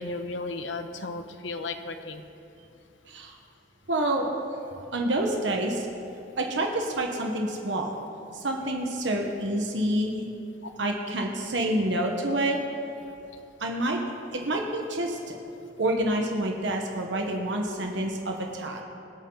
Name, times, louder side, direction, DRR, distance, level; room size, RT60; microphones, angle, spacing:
voice 1, 0.0-2.2 10.6-10.7, left 3 dB, 85° left, 7 dB, 1.0 m, -34 dB
voice 2, 3.9-4.3 4.9-5.9 6.4-7.9 8.3-10.2 10.8-12.6 13.6-14.0 14.3-15.3 15.8-18.8, right 1 dB, 70° right, 1 dB, 1.4 m, -28 dB
25.0 x 8.8 x 4.0 m, 2.7 s
head